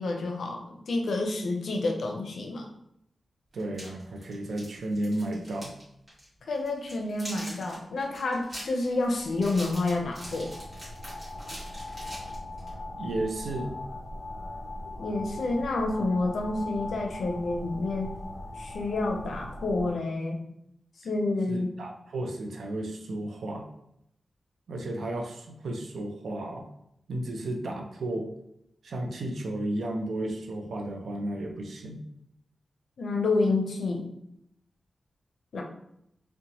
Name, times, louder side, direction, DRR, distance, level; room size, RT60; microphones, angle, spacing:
voice 1, 0.0-2.7 6.5-10.5 15.0-18.1 18.6-20.4 21.0-21.7 33.0-34.1 35.5-35.6, left 2 dB, 70° left, 1 dB, 0.4 m, -29 dB
voice 2, 3.5-5.7 13.0-13.8 21.5-23.7 24.7-26.7 27.1-28.3 28.8-32.0, right 1 dB, 75° right, 3 dB, 0.4 m, -33 dB
sound 1, 3.6-5.8 6.1-6.3 6.6-12.7, equal, 30° right, 1.2 m, -43 dB
sound 2, 8.9-19.9, left 2 dB, 15° left, 1.3 m, -40 dB
2.9 x 2.1 x 2.7 m, 0.79 s
wide cardioid pair, 175°, 0 cm